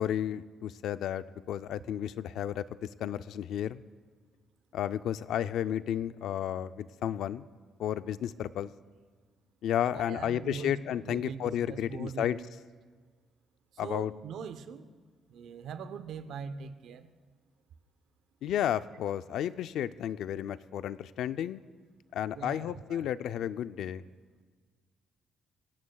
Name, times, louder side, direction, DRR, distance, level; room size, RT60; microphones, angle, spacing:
voice 1, 0.0-3.8 4.7-7.5 7.8-8.7 9.6-12.4 13.8-14.1 18.4-21.6 22.1-24.0, left 10 dB, 70° left, 13 dB, 0.4 m, -32 dB
voice 2, 9.8-12.5 13.8-14.9 15.3-17.1 22.3-23.1, right 6 dB, 65° right, 12 dB, 0.8 m, -42 dB
24.5 x 17.5 x 2.3 m, 1.5 s
cardioid pair, 145°, 0 cm